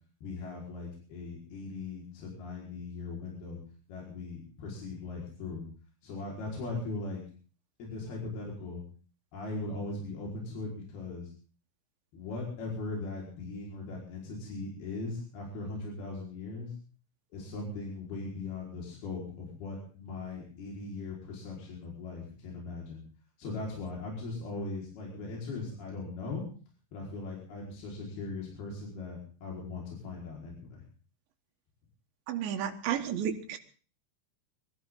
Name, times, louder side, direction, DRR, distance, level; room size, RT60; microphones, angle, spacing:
voice 1, 0.2-3.6 3.9-5.7 6.0-7.2 7.8-8.8 9.3-11.3 12.1-16.7 17.3-23.0 23.4-26.4 26.9-30.8, left 3 dB, 55° left, -3 dB, 6.4 m, -39 dB
voice 2, 32.3-33.6, right 9 dB, 70° right, 5 dB, 3.5 m, -32 dB
23.5 x 14.5 x 3.9 m, 0.40 s
omnidirectional pair, 5.6 m